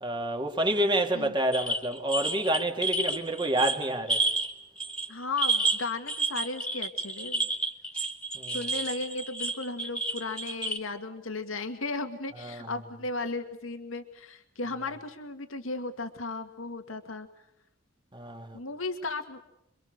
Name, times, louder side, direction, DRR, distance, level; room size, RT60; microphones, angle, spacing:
voice 1, 0.0-4.2 8.3-8.6 12.4-12.7 18.1-18.6, right 1 dB, 25° right, 2.7 m, -28 dB
sound 1, 1.5-4.5 4.8-5.1 5.4-10.8, right 2 dB, 5° left, 2.6 m, -30 dB
voice 2, 5.1-7.5 8.5-17.3 18.5-19.4, left 3 dB, 90° left, 2.1 m, -35 dB
28.0 x 24.5 x 6.7 m
head